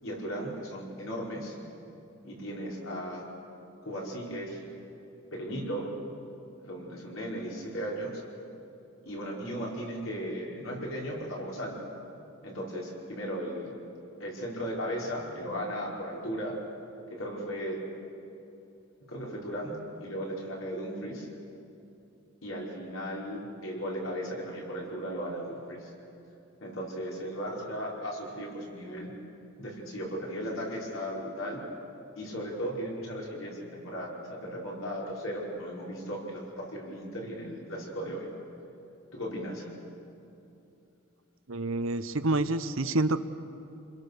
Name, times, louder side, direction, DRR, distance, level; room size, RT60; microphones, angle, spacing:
voice 1, 0.0-1.6 2.2-3.3 3.8-4.6 5.3-5.9 6.6-8.2 9.0-11.7 12.4-13.7 14.2-16.5 17.1-17.8 19.1-21.3 22.4-25.9 26.6-29.1 29.6-31.6 32.2-38.3 39.1-39.7, equal, 70° left, -3 dB, 5.3 m, -36 dB
voice 2, 41.5-43.2, right 2 dB, 70° right, 12 dB, 0.9 m, -27 dB
29.5 x 22.0 x 6.8 m, 2.8 s
head